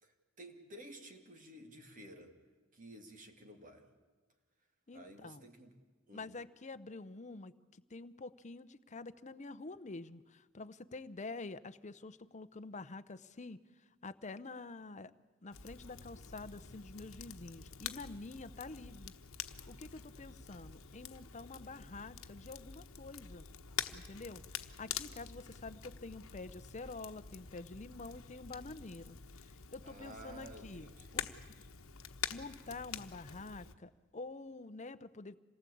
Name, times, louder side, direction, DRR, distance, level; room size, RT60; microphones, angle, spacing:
voice 1, 0.0-2.3 2.7-3.9 4.9-5.8 6.1-6.3 29.8-31.3, right 1 dB, 40° right, 4 dB, 2.5 m, -53 dB
voice 2, 4.9-5.5 6.1-13.6 14.0-15.1 15.4-19.1 19.7-23.5 23.9-30.9 31.1-31.3 32.3-35.4, left 3 dB, 35° left, 12 dB, 0.8 m, -47 dB
Crackle, 15.5-33.7, left 8 dB, 85° left, 1.1 m, -47 dB
27.0 x 19.0 x 8.5 m, 1.3 s
head